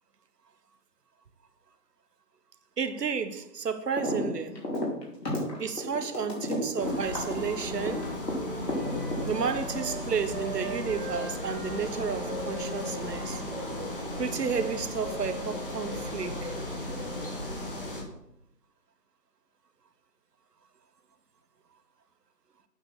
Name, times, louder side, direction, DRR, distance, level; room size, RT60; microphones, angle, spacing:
voice 1, 2.8-4.5 5.6-8.1 9.2-13.4 14.2-16.5, right 6 dB, 75° right, 1.0 m, -32 dB
sound 1, 4.0-4.3 4.5-8.3 8.7-9.6, left 1 dB, 80° left, 3.3 m, -31 dB
Wind instrument woodwind instrument, 6.1-10.0 10.3-14.6, right 3 dB, 30° right, 1.7 m, -42 dB
sound 2, 6.8-18.0, left 1 dB, 35° left, 1.2 m, -35 dB
8.6 x 4.0 x 6.3 m
figure-of-eight pair, 170°, 48 cm